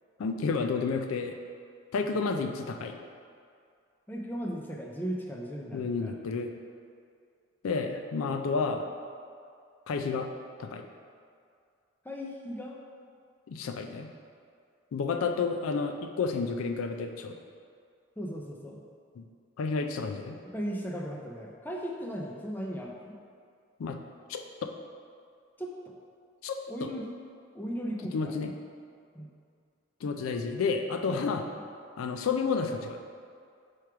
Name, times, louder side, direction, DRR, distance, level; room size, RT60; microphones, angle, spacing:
voice 1, 0.2-1.4 1.9-3.0 5.7-6.5 7.6-8.9 9.9-10.3 10.6-10.9 13.5-14.1 14.9-17.3 19.2-19.3 19.6-20.4 23.8-24.0 24.3-24.4 26.4-26.5 26.8-26.9 28.1-28.5 30.0-31.4 32.0-33.0, left 4 dB, 90° left, 5 dB, 0.4 m, -30 dB
voice 2, 4.1-6.1 12.0-12.8 18.2-18.8 20.4-23.2 25.6-25.9 26.7-27.2 27.5-28.4 29.1-29.3 31.1-31.6, equal, 10° left, 0 dB, 0.4 m, -37 dB
4.7 x 4.6 x 4.8 m, 2.3 s
head